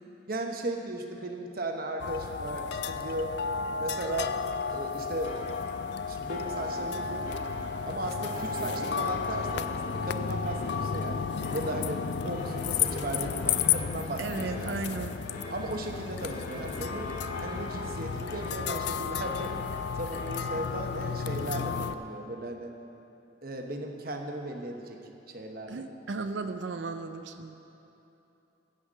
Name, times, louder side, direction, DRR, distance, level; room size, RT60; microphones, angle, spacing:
voice 1, 0.3-3.3 3.8-4.3 4.7-5.3 6.1-7.3 7.9-11.2 11.5-15.1 15.5-17.1 17.4-19.6 19.9-22.7 23.4-25.0 25.3-25.9, right 1 dB, 50° right, 3 dB, 1.0 m, -36 dB
sound 1, 2.0-21.9, left 6 dB, 60° left, 0.3 m, -33 dB
sound 2, 4.2-20.6, left 1 dB, 45° left, 1.8 m, -44 dB
voice 2, 14.2-15.1 25.7-27.6, right 3 dB, 65° right, 8 dB, 0.5 m, -35 dB
16.0 x 5.7 x 6.6 m, 3.0 s
head